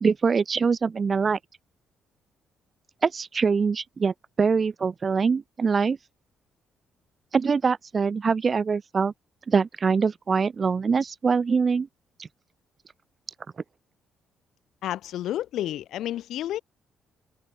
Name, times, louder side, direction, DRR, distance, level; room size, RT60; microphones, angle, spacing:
voice 1, 0.0-1.4 3.0-6.0 7.3-9.1 9.5-11.9, right 5 dB, 40° right, 0.4 m, -23 dB
voice 2, 14.8-16.6, left 12 dB, 80° left, 0.5 m, -30 dB
open air
cardioid pair, 80°, 0 cm